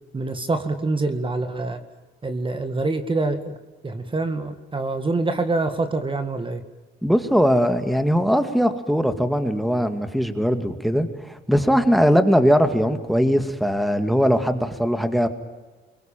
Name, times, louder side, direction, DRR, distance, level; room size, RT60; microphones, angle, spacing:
voice 1, 0.1-1.8 2.2-3.6 3.8-6.6, right 3 dB, 25° right, 8 dB, 2.0 m, -25 dB
voice 2, 7.0-15.3, equal, ahead, 9 dB, 2.1 m, -20 dB
24.0 x 22.5 x 9.0 m, 1.3 s
cardioid pair, 90°, 20 cm